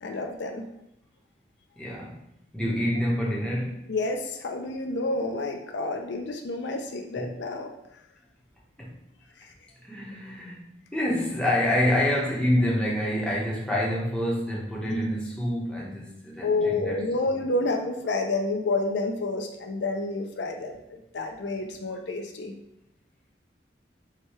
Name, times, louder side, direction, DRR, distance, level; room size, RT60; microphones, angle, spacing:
voice 1, 0.0-0.7 3.9-7.7 9.4-9.5 14.9-15.1 16.4-22.6, left 2 dB, 70° left, 4 dB, 0.5 m, -29 dB
voice 2, 1.8-2.2 2.5-3.9 8.8-9.0 9.9-17.0, left 1 dB, 5° left, -4 dB, 0.9 m, -27 dB
4.7 x 2.2 x 4.3 m, 0.82 s
head